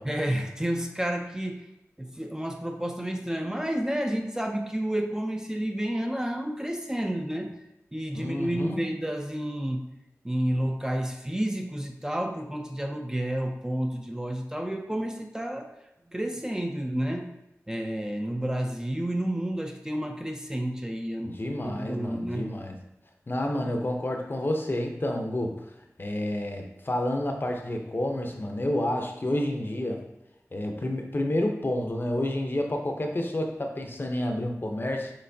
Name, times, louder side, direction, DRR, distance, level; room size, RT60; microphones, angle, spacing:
voice 1, 0.1-1.6 2.0-7.6 7.9-9.9 10.2-15.7 16.1-17.3 17.7-22.6, right 1 dB, 10° right, 3 dB, 0.4 m, -30 dB
voice 2, 8.1-8.8 21.2-22.8 23.3-25.7 26.0-30.0 30.5-35.1, left 1 dB, 40° left, 3 dB, 0.6 m, -29 dB
6.5 x 3.0 x 2.7 m, 0.88 s
wide cardioid pair, 75°, 5 cm